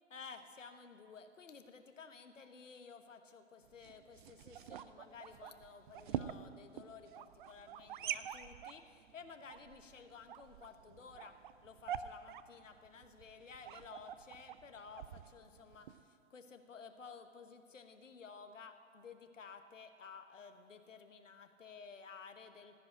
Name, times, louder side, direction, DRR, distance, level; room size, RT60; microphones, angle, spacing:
voice 1, 0.1-22.8, left 5 dB, 80° left, 7 dB, 1.2 m, -54 dB
sound 1, 3.6-16.0, right 10 dB, 45° right, 0.5 m, -47 dB
15.5 x 5.4 x 9.9 m, 2.3 s
figure-of-eight pair, 115°, 37 cm